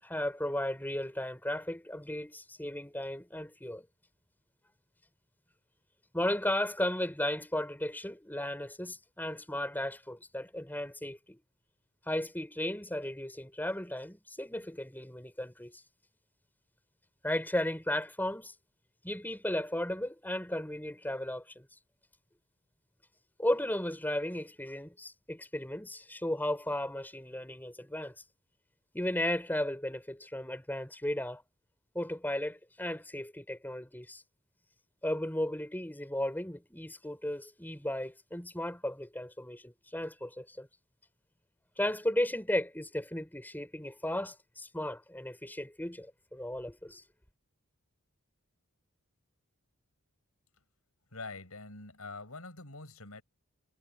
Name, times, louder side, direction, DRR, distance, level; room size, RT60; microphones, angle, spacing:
voice 1, 0.0-3.9 6.1-11.4 12.1-15.8 17.2-18.5 19.0-21.7 23.4-28.1 28.9-31.4 31.9-34.2 35.0-40.7 41.8-47.0, left 1 dB, 10° left, 6.0 m, -35 dB
voice 2, 51.1-53.2, left 3 dB, 80° left, 7.2 m, -45 dB
head